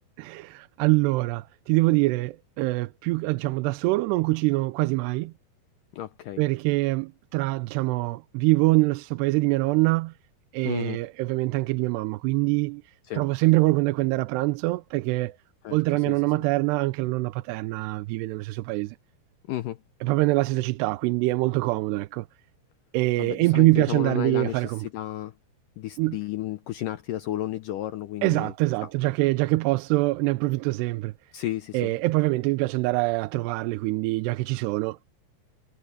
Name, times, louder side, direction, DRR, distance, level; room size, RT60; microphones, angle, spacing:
voice 1, 0.2-5.3 6.4-10.1 10.5-12.8 13.1-15.4 15.7-19.0 20.0-22.3 22.9-24.9 26.0-26.2 28.2-31.1 31.7-35.0, right 21 dB, 90° right, 2.8 m, -24 dB
voice 2, 5.9-6.4 10.6-11.0 13.1-13.2 15.6-15.8 16.1-16.2 19.5-19.8 23.2-25.3 25.8-28.5 31.3-31.9, left 14 dB, 80° left, 1.9 m, -32 dB
omnidirectional pair, 4.7 m